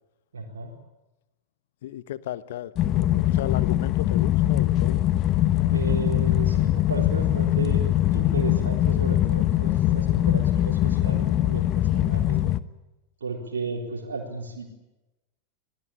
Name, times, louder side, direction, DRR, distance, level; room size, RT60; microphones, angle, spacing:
voice 1, 0.3-0.7 5.7-12.4 13.2-14.7, right 4 dB, 70° right, 4.3 m, -34 dB
voice 2, 1.8-5.0, left 12 dB, 60° left, 1.1 m, -35 dB
sound 1, 2.8-12.6, left 13 dB, 35° left, 1.1 m, -22 dB
26.5 x 19.5 x 8.8 m
figure-of-eight pair, 90°, 0 cm